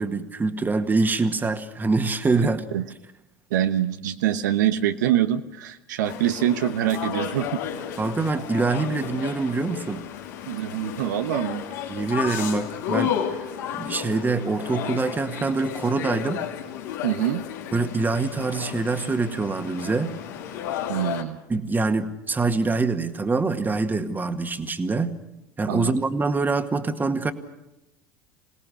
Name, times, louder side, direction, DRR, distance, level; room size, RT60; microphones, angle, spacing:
voice 1, 0.0-2.6 8.0-10.0 11.9-13.5 13.7-16.4 17.7-20.2 21.5-25.1 25.6-27.3, right 3 dB, 20° right, 8 dB, 1.9 m, -25 dB
voice 2, 3.5-7.6 10.5-11.6 17.0-17.4 20.9-21.4 25.7-26.0, right 11 dB, 75° right, 8 dB, 1.1 m, -24 dB
sound 1, 6.0-21.2, left 9 dB, 75° left, 2.8 m, -33 dB
27.0 x 18.0 x 6.4 m, 0.91 s
hypercardioid pair, 85°, 10 cm